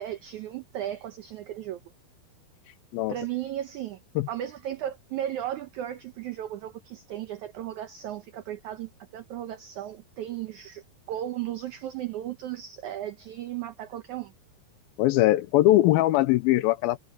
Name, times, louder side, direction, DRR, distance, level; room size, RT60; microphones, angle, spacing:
voice 1, 0.0-1.8 3.1-4.0 4.3-14.3, right 12 dB, 85° right, 1.7 m, -35 dB
voice 2, 15.0-17.0, left 16 dB, 80° left, 2.3 m, -21 dB
omnidirectional pair, 4.6 m